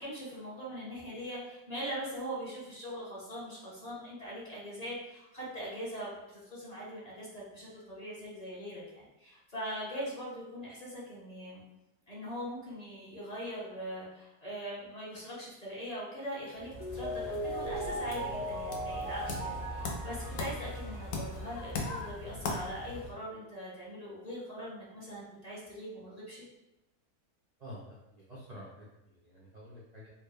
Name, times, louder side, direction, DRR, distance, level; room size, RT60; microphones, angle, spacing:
voice 1, 0.0-11.6 12.1-26.4, equal, 35° left, -7 dB, 0.7 m, -41 dB
sound 1, 16.5-23.1, left 2 dB, 65° left, 0.9 m, -39 dB
Mallet percussion, 16.5-21.5, right 1 dB, 30° right, 0.6 m, -39 dB
voice 2, 27.6-28.9 29.2-30.1, equal, 80° right, -7 dB, 0.3 m, -48 dB
4.1 x 2.1 x 3.2 m, 0.95 s
omnidirectional pair, 1.6 m